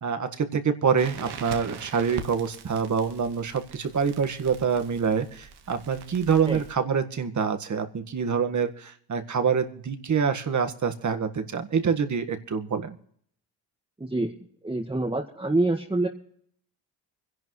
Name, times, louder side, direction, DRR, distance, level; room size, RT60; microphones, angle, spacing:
voice 1, 0.0-13.0, right 6 dB, 40° right, 7 dB, 1.8 m, -26 dB
Crackle, 1.0-6.8, right 6 dB, 60° right, 1.6 m, -42 dB
voice 2, 14.0-14.3 14.6-16.1, right 2 dB, 10° right, 0 dB, 1.8 m, -26 dB
24.5 x 11.0 x 3.2 m, 0.66 s
supercardioid pair, 75°, 44 cm